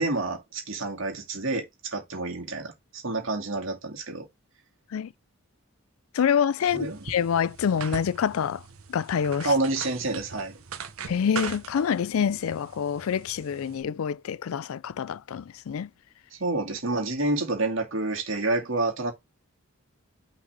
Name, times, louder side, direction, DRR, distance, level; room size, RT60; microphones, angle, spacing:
voice 1, 0.0-4.3 6.7-7.0 9.4-10.5 16.3-19.1, right 2 dB, 65° right, 2.4 m, -28 dB
voice 2, 6.1-8.6 8.9-9.5 11.1-15.9, left 7 dB, 80° left, 0.4 m, -26 dB
sound 1, 6.7-13.8, right 5 dB, 85° right, 1.0 m, -41 dB
5.8 x 4.0 x 6.0 m
head